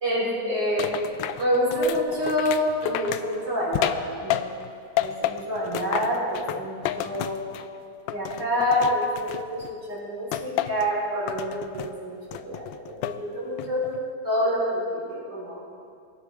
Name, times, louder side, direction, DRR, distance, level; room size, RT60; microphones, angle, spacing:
voice 1, 0.0-0.9 1.4-4.4 5.0-7.4 8.1-13.9 14.2-15.0 15.3-15.6, equal, 70° right, -8 dB, 4.9 m, -27 dB
sound 1, 0.8-4.7 5.0-7.8 8.1-9.7 10.3-10.9 11.3-11.9 12.3-13.2 13.6-14.0, left 12 dB, 80° left, 1.3 m, -31 dB
22.0 x 11.0 x 3.6 m, 2.3 s
omnidirectional pair, 2.0 m